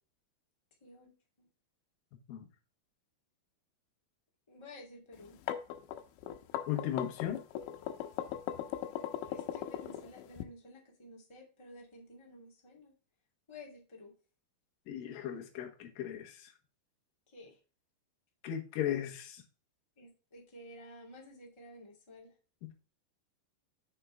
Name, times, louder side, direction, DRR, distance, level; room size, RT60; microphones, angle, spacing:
voice 1, 0.8-1.1 1.4-1.5 4.5-5.4 9.3-12.9 13.5-14.1 17.3-17.6 20.0-22.3, left 1 dB, 25° left, -2 dB, 0.5 m, -53 dB
sound 1, 5.2-10.4, left 11 dB, 85° left, 3.2 m, -39 dB
voice 2, 6.7-7.4 14.9-16.5 18.4-19.4 22.6-22.7, left 10 dB, 60° left, 4 dB, 2.7 m, -36 dB
6.8 x 6.5 x 3.7 m, 0.36 s
omnidirectional pair, 5.4 m